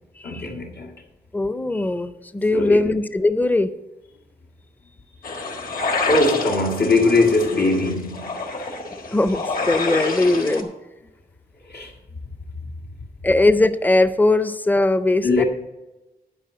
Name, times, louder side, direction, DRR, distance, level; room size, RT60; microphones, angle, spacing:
voice 1, 0.2-0.9 2.5-2.9 6.1-8.7 11.7-11.9 15.2-15.4, left 2 dB, 85° left, 1.8 m, -21 dB
voice 2, 1.3-3.7 9.1-10.7 13.2-15.4, left 2 dB, 10° left, 0.5 m, -20 dB
sound 1, 5.2-10.6, left 3 dB, 60° left, 1.5 m, -28 dB
11.0 x 5.4 x 7.8 m
wide cardioid pair, 150°, 16 cm